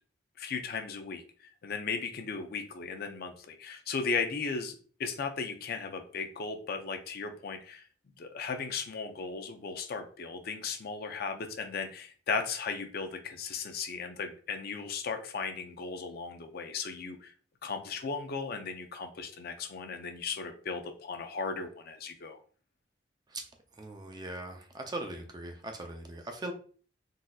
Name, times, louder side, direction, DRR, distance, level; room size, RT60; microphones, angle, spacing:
voice 1, 0.4-7.8 8.2-17.3 17.6-22.4, left 5 dB, 55° left, 6 dB, 0.5 m, -36 dB
voice 2, 23.7-26.5, right 2 dB, 25° right, 4 dB, 0.5 m, -40 dB
3.9 x 2.6 x 2.3 m, 0.42 s
head